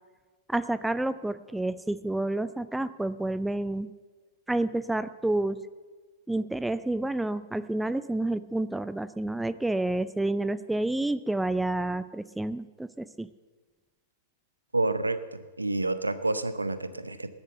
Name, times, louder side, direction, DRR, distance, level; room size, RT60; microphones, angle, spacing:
voice 1, 0.5-3.9 4.5-5.6 6.3-13.3, right 2 dB, 5° right, 15 dB, 0.4 m, -29 dB
voice 2, 14.7-17.3, right 2 dB, 90° right, 13 dB, 0.7 m, -29 dB
19.0 x 7.2 x 6.8 m, 1.3 s
figure-of-eight pair, 105°, 0 cm